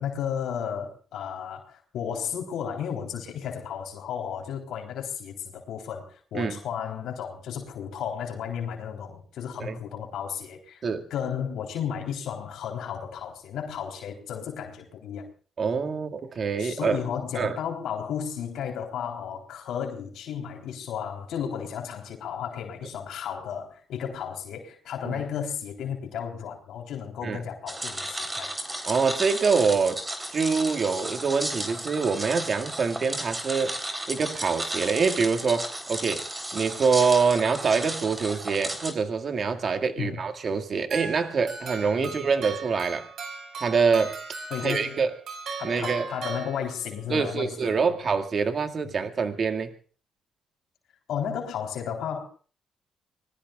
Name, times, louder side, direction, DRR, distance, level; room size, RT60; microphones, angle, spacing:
voice 1, 0.0-10.8 11.1-15.3 16.6-28.5 40.0-40.2 42.0-42.1 44.5-45.0 45.6-48.1 51.1-52.2, left 8 dB, 80° left, 3.5 m, -33 dB
voice 2, 15.6-17.0 17.4-17.5 25.0-25.2 27.2-27.4 28.9-30.0 30.3-33.8 34.1-36.3 36.5-43.1 43.6-44.1 44.6-45.1 45.6-46.1 47.1-49.7, right 5 dB, 45° right, 2.1 m, -25 dB
sound 1, 27.7-38.9, right 1 dB, 15° right, 3.8 m, -34 dB
sound 2, 40.9-47.1, right 4 dB, 65° right, 5.7 m, -38 dB
25.5 x 20.5 x 2.4 m
cardioid pair, 90°, 0 cm